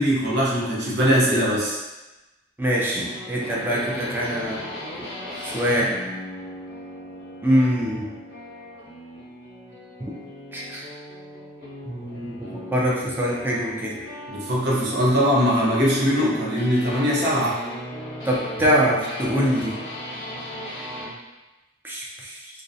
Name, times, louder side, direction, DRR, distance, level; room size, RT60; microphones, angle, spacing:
voice 1, 0.0-1.8 5.3-5.6 14.3-17.6, equal, 65° right, -5 dB, 0.6 m, -21 dB
voice 2, 2.6-4.6 5.5-5.9 7.4-8.1 10.5-10.8 11.8-14.0 18.2-19.8 21.8-22.3, equal, 10° right, -5 dB, 0.4 m, -23 dB
sound 1, 2.9-21.2, left 1 dB, 90° left, 0.7 m, -37 dB
2.5 x 2.0 x 2.6 m, 1.1 s
head